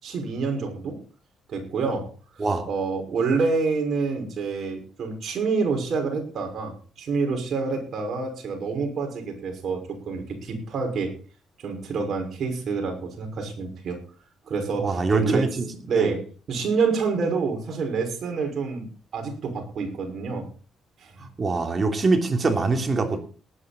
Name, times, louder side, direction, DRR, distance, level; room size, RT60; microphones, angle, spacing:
voice 1, 0.0-1.0 1.5-2.1 2.4-11.1 11.6-14.0 14.5-15.5 15.9-18.9 19.1-20.5 21.0-21.1, right 4 dB, 60° right, 3 dB, 5.8 m, -27 dB
voice 2, 14.8-15.7 15.9-16.1 21.4-23.2, right 3 dB, 35° right, 4 dB, 3.1 m, -23 dB
19.0 x 9.8 x 4.4 m, 0.38 s
cardioid pair, 90°, 0 cm